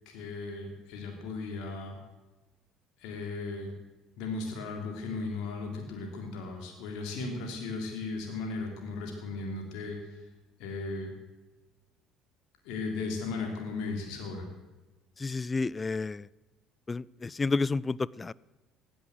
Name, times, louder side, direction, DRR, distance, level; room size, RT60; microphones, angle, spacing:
voice 1, 0.0-1.9 3.0-3.7 4.2-10.2 10.6-11.1 12.6-14.5, left 3 dB, 70° left, 2 dB, 3.2 m, -36 dB
voice 2, 15.2-16.3 16.9-18.3, left 3 dB, 25° left, 23 dB, 0.4 m, -30 dB
16.0 x 10.5 x 7.9 m, 1.1 s
hypercardioid pair, 60°, 0 cm